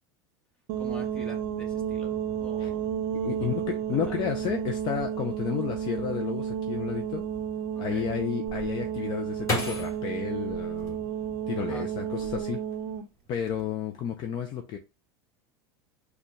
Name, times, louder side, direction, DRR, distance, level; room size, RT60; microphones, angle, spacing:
sound 1, 0.7-13.1, right 9 dB, 50° right, 0.5 m, -32 dB
voice 1, 0.8-2.9 3.4-3.5 4.0-4.1 7.9-8.1 10.5-10.6 11.6-11.9, equal, 5° left, 1.3 m, -45 dB
voice 2, 3.2-7.2 7.8-11.0 11.5-12.6 13.3-14.8, left 9 dB, 40° left, 0.5 m, -32 dB
sound 2, 8.5-11.6 12.1-12.8 13.1-13.6, left 2 dB, 25° left, 1.4 m, -35 dB
4.3 x 2.3 x 3.1 m
supercardioid pair, 130°, 12 cm